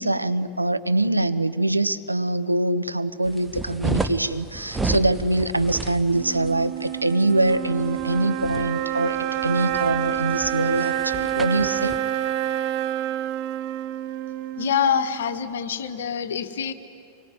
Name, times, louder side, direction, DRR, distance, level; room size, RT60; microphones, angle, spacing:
voice 1, 0.0-9.2 9.4-12.0, right 2 dB, 85° right, 11 dB, 0.9 m, -23 dB
sound 1, 3.3-12.0, right 3 dB, 10° right, 1.2 m, -33 dB
sound 2, 6.1-15.5, right 11 dB, 45° right, 0.9 m, -28 dB
voice 2, 14.6-16.7, left 7 dB, 60° left, 9 dB, 1.4 m, -25 dB
25.0 x 23.0 x 9.4 m, 2.5 s
figure-of-eight pair, 90°, 0 cm